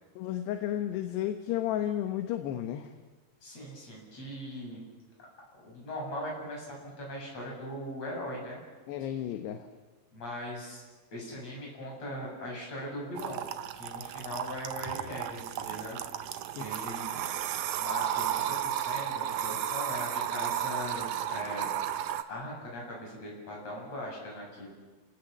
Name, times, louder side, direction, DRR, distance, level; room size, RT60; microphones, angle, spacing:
voice 1, 0.2-2.9 8.9-9.7 16.5-16.9, left 11 dB, 85° left, 6 dB, 3.2 m, -33 dB
voice 2, 3.4-4.8 5.6-8.6 9.0-9.1 10.1-10.8 11.1-13.4 13.7-16.0 16.2-17.2 17.7-21.7 22.3-24.7, equal, 40° left, -2 dB, 8.2 m, -40 dB
sound 1, 13.2-22.2, right 10 dB, 80° right, 1.8 m, -33 dB
29.5 x 19.0 x 7.3 m, 1.3 s
omnidirectional pair, 4.7 m